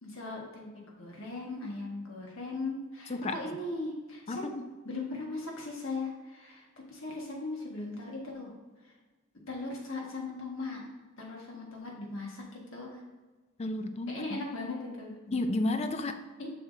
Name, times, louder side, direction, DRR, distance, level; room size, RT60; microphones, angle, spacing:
voice 1, 0.0-4.5 4.8-8.5 8.8-8.9 9.5-10.8 11.2-13.0 14.1-15.1 16.4-16.5, left 2 dB, 60° left, -2 dB, 1.5 m, -38 dB
voice 2, 4.3-4.6 13.6-14.2 15.3-16.2, left 2 dB, 30° left, 9 dB, 0.4 m, -31 dB
7.3 x 5.9 x 2.7 m, 1.3 s
head